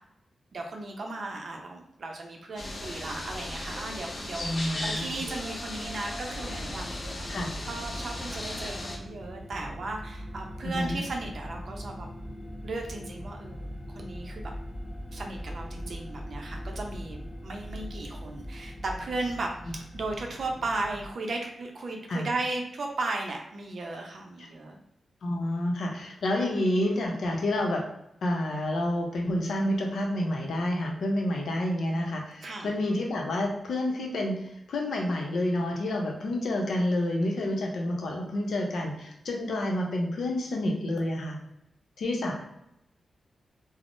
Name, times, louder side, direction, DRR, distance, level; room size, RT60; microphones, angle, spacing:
voice 1, 0.5-4.5 4.8-6.9 7.6-12.1 12.6-13.7 13.9-14.5 15.1-24.8 32.4-32.7, right 2 dB, 55° right, 2 dB, 0.5 m, -36 dB
sound 1, 2.6-9.0, left 1 dB, 35° left, 0.5 m, -36 dB
voice 2, 4.4-5.0 7.3-7.5 10.6-11.0 22.1-22.3 25.2-27.8 28.2-41.4 42.0-42.3, left 1 dB, 75° left, 0 dB, 0.6 m, -29 dB
sound 2, 6.3-21.1, equal, 20° left, 0.9 m, -41 dB
3.5 x 2.0 x 2.5 m, 0.83 s
wide cardioid pair, 160°, 0 cm